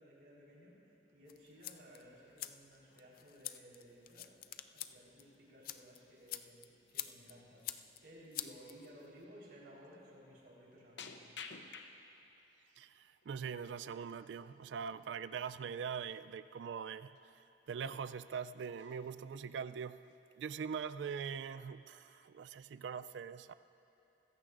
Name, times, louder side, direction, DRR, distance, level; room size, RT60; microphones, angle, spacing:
voice 1, 0.0-4.4 4.7-6.6 6.9-7.7 8.0-11.3, equal, 70° right, -5 dB, 4.0 m, -57 dB
sound 1, 1.3-9.2, left 12 dB, 55° left, 0.4 m, -48 dB
sound 2, 6.8-7.1 7.5-7.7 8.3-8.4 9.4-9.5 9.8-10.0 11.0-12.3 12.8-13.4 14.8-15.1 15.4-15.5 15.9-16.1 16.8-16.9 17.1-17.3 17.8-18.4 18.6-19.3 19.8-20.2 20.5-20.6 20.9-21.7 22.1-22.5, left 5 dB, 85° left, 0.8 m, -54 dB
voice 2, 12.8-20.0 20.4-23.5, right 6 dB, 85° right, 14 dB, 0.3 m, -42 dB
24.5 x 15.0 x 2.5 m, 2.8 s
head